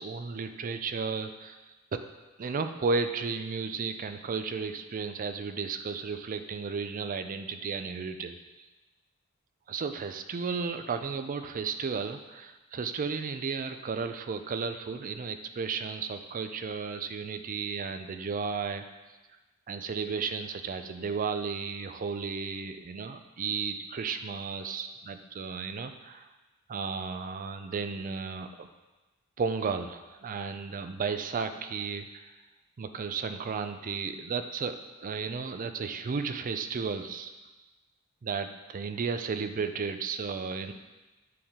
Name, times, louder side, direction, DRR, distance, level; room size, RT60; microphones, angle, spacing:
voice 1, 0.0-1.6 1.9-2.0 2.4-8.4 9.7-18.8 19.7-26.3 26.7-28.7 29.4-32.1 32.8-37.3 38.2-40.7, right 5 dB, 40° right, 8 dB, 0.4 m, -33 dB
9.5 x 3.4 x 3.6 m, 1.1 s
head